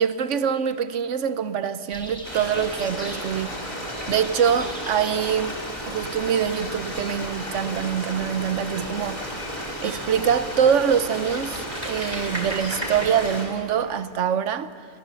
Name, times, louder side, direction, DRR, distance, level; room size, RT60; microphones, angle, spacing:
voice 1, 0.0-3.5 4.1-5.6 5.9-9.4 9.8-14.7, right 8 dB, 70° right, 1.1 m, -24 dB
sound 1, 1.9-13.3, equal, 5° left, 3.3 m, -42 dB
Stream, 2.2-13.4, equal, 25° left, 4.5 m, -33 dB
sound 2, 9.5-9.6 10.2-10.3 10.6-13.4, right 1 dB, 20° right, 3.4 m, -36 dB
29.0 x 15.0 x 7.0 m
omnidirectional pair, 1.4 m